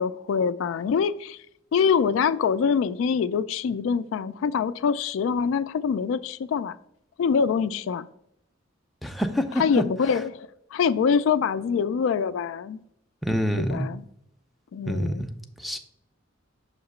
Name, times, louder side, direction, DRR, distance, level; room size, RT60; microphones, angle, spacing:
voice 1, 0.0-1.4 1.7-6.8 7.2-8.1 9.6-12.8 13.6-14.0 14.7-15.3, left 6 dB, 75° left, 0.3 m, -24 dB
voice 2, 9.0-9.8 13.2-13.9 14.9-15.3 15.6-15.8, equal, ahead, 0.4 m, -26 dB
6.4 x 2.9 x 5.3 m
head